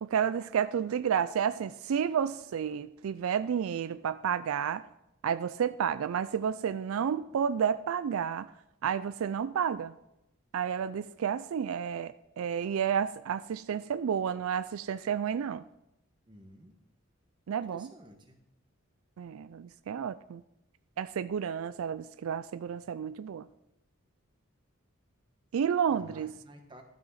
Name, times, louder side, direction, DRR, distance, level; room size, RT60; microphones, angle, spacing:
voice 1, 0.0-4.8 5.2-8.5 8.8-9.9 10.5-15.6 17.5-17.9 19.2-20.4 21.0-23.5 25.5-26.3, right 8 dB, 80° right, 14 dB, 0.4 m, -31 dB
voice 2, 16.3-16.8 17.7-18.4 25.9-26.8, equal, 20° right, 4 dB, 1.2 m, -52 dB
13.0 x 6.1 x 5.7 m, 0.84 s
head